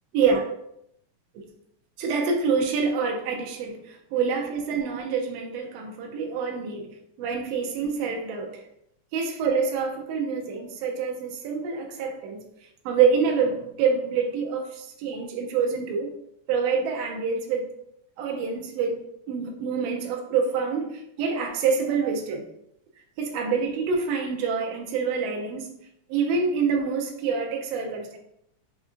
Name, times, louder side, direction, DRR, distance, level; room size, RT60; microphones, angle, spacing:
voice 1, 0.1-0.4 2.0-6.9 7.2-8.6 9.1-12.4 12.8-16.1 16.5-17.7 18.2-19.0 19.3-22.4 23.2-25.7 26.1-28.2, right 5 dB, 80° right, 2 dB, 1.5 m, -26 dB
5.1 x 2.5 x 2.4 m, 0.76 s
omnidirectional pair, 3.3 m